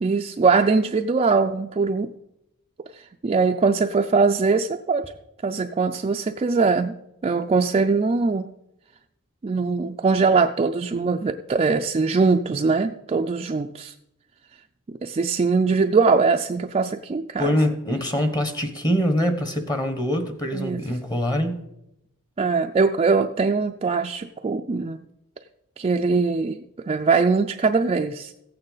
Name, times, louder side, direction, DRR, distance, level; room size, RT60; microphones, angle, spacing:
voice 1, 0.0-2.1 3.2-5.0 5.4-6.9 7.2-8.5 9.4-13.9 15.0-17.5 20.5-20.8 22.4-25.0 25.8-26.6 26.9-28.3, right 4 dB, 25° right, 5 dB, 0.3 m, -21 dB
voice 2, 17.4-21.6, equal, 20° left, 8 dB, 1.0 m, -24 dB
14.5 x 8.8 x 3.9 m, 0.85 s
head